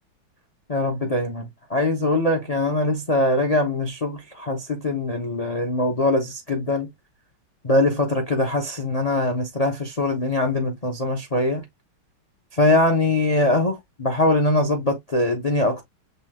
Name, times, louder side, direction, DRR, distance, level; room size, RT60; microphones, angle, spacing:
voice 1, 0.7-6.9 7.6-11.6 12.6-15.8, left 2 dB, 90° left, 0.3 m, -22 dB
6.8 x 2.3 x 2.8 m
omnidirectional pair, 2.3 m